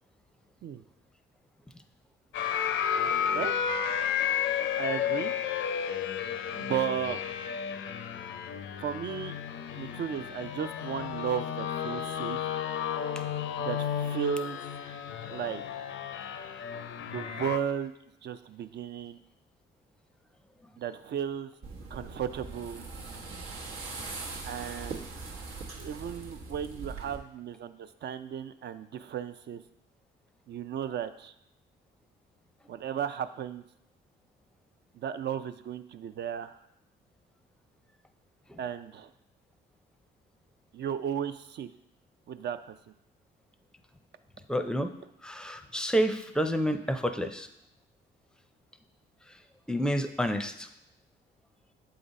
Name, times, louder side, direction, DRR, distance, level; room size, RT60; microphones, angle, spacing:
sound 1, 2.3-17.6, left 8 dB, 70° left, 0.5 m, -32 dB
voice 1, 4.8-5.3 6.6-7.2 8.8-9.4 9.7-12.5 13.6-14.6 15.3-15.8 17.1-17.9 18.2-19.2 20.8-21.5 21.9-22.9 24.5-25.1 25.8-29.6 30.5-31.3 32.7-33.6 34.9-36.6 38.6-39.1 40.7-41.7 42.3-42.7, right 8 dB, 55° right, 11 dB, 0.5 m, -35 dB
sound 2, 21.6-27.2, right 3 dB, 85° right, 1.1 m, -41 dB
voice 2, 44.5-44.9 45.2-47.5 49.7-50.7, equal, 5° left, 8 dB, 0.5 m, -29 dB
7.7 x 3.8 x 4.1 m, 0.81 s
cardioid pair, 75°, 21 cm